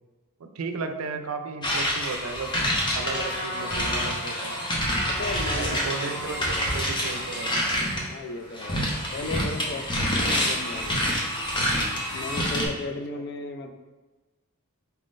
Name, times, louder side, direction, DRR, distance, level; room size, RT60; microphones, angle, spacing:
voice 1, 0.4-2.6 2.9-4.6 5.5-7.8 13.1-13.2, right 4 dB, 80° right, 7 dB, 0.4 m, -35 dB
sound 1, 1.6-8.1 8.5-12.7, equal, 20° left, 0.7 m, -27 dB
Trumpet, 3.0-8.2, equal, 75° left, 0.9 m, -38 dB
voice 2, 3.6-4.0 5.1-5.8 6.4-6.7 8.1-11.1 12.1-13.7, left 2 dB, 50° left, 6 dB, 0.4 m, -35 dB
4.3 x 3.6 x 2.5 m, 1.2 s
head